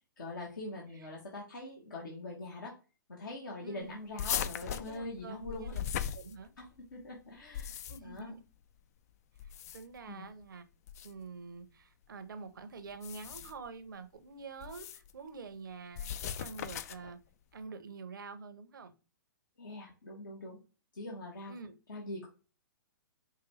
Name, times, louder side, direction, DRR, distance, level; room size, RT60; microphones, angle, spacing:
voice 1, 0.2-2.7 3.1-5.7 6.6-6.7 6.9-8.3 10.1-10.3 19.6-20.6 20.9-21.5 21.9-22.3, left 2 dB, 70° left, 1.1 m, -43 dB
voice 2, 3.6-4.0 4.7-5.8 6.1-6.5 7.9-8.4 9.4-10.7 11.0-17.2 17.5-18.9 21.5-21.7, right 4 dB, 70° right, 0.7 m, -47 dB
sound 1, 4.2-6.8 7.4-8.2 9.4-10.0 10.9-11.1 12.9-13.7 14.6-15.1 15.9-17.1, left 9 dB, 45° left, 0.3 m, -38 dB
4.8 x 2.3 x 3.1 m
figure-of-eight pair, 120°, 11 cm